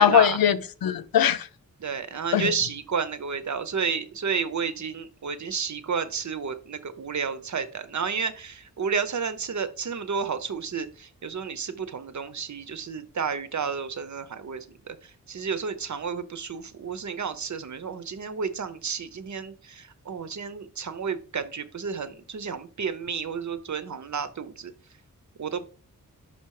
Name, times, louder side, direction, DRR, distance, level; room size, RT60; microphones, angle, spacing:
voice 1, 0.0-1.5 2.3-2.5, left 9 dB, 85° left, 0.6 m, -21 dB
voice 2, 1.8-24.7 25.4-25.7, right 6 dB, 55° right, 0.8 m, -31 dB
5.8 x 5.6 x 4.8 m
wide cardioid pair, 140°, 34 cm